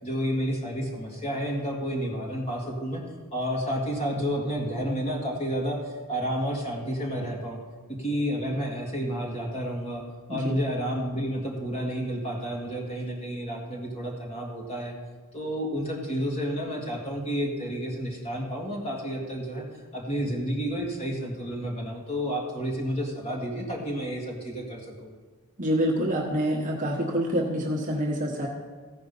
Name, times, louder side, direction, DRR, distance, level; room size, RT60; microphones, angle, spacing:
voice 1, 0.0-3.0 3.3-5.8 6.1-7.6 7.9-10.0 10.3-15.0 15.3-19.7 19.9-25.1, equal, 30° left, -1 dB, 1.9 m, -30 dB
voice 2, 25.6-28.5, equal, 35° right, -1 dB, 1.2 m, -26 dB
15.0 x 5.1 x 5.4 m, 1.5 s
head